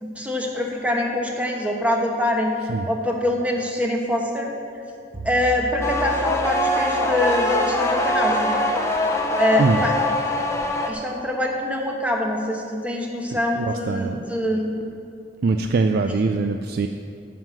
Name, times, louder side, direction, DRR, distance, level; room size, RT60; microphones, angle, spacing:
voice 1, 0.0-2.5 2.9-4.5 5.2-8.6 9.4-9.9 10.9-14.8 16.0-16.2, left 1 dB, 10° right, 0 dB, 1.1 m, -24 dB
Bowed string instrument, 5.1-9.7, right 1 dB, 35° right, 0.9 m, -39 dB
sound 1, 5.8-10.9, left 1 dB, 15° left, 0.8 m, -23 dB
voice 2, 13.3-14.3 15.4-16.9, right 3 dB, 60° right, 6 dB, 0.4 m, -23 dB
9.5 x 5.7 x 7.6 m, 2.5 s
head